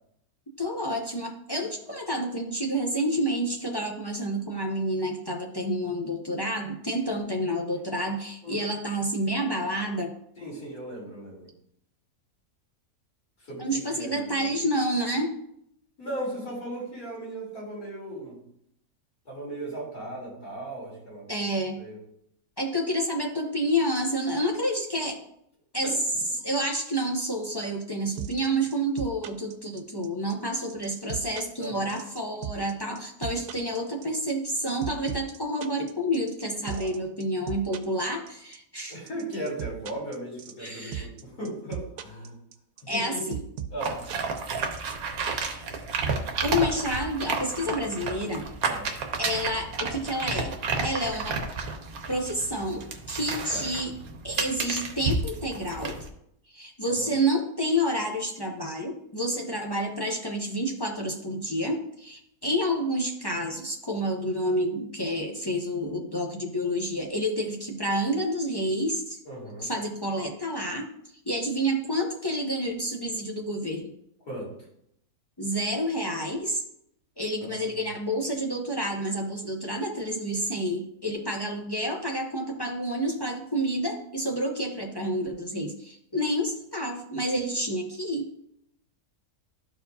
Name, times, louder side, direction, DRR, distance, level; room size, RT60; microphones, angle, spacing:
voice 1, 0.6-10.1 13.6-15.3 21.3-21.8 22.6-25.2 25.7-25.9 26.4-39.0 40.6-41.1 42.9-43.4 45.2-45.6 46.4-48.5 48.9-50.5 50.8-51.4 52.1-53.9 54.2-56.0 56.5-69.2 69.6-70.9 71.3-73.9 75.4-76.6 77.2-88.3, equal, 30° left, 1 dB, 0.4 m, -29 dB
voice 2, 10.4-11.5 13.4-14.7 16.0-18.4 19.3-21.3 21.7-22.0 31.6-32.0 36.7-36.9 38.9-42.4 42.8-43.2 43.7-44.0 48.6-48.9 53.5-53.7 56.9-57.1 69.3-69.7 74.3-74.5 77.5-77.8, right 1 dB, 70° left, -6 dB, 3.9 m, -37 dB
sound 1, 28.2-44.9, right 10 dB, 85° right, 1.2 m, -36 dB
sound 2, 43.8-56.1, right 4 dB, 70° right, 1.3 m, -31 dB
12.5 x 4.6 x 2.7 m, 0.75 s
omnidirectional pair, 1.6 m